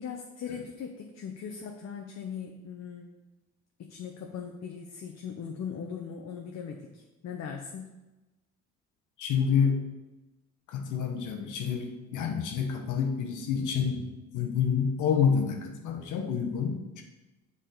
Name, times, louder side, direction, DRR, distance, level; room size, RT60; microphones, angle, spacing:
voice 1, 0.0-3.1 3.8-7.9, left 7 dB, 60° left, 2 dB, 0.8 m, -39 dB
voice 2, 9.2-9.8 10.7-14.0 14.3-17.0, left 6 dB, 80° left, 3 dB, 1.0 m, -28 dB
6.6 x 4.9 x 3.9 m, 1.1 s
cardioid pair, 90°, 30 cm